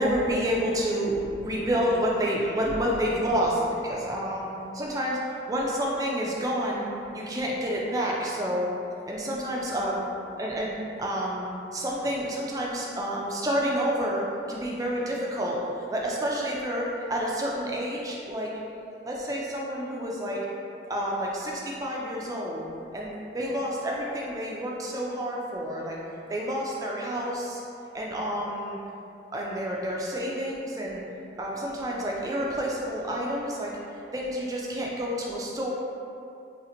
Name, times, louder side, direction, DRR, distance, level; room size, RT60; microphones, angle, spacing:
voice 1, 0.0-6.9 7.1-8.7 9.1-10.1 10.4-10.7 11.0-11.5 11.7-18.5 19.0-20.4 20.9-22.6 22.9-26.0 26.3-27.6 27.9-28.8 29.3-31.0 31.4-33.7 34.1-35.7, equal, 20° right, -3 dB, 0.4 m, -29 dB
2.8 x 2.5 x 3.7 m, 2.7 s
head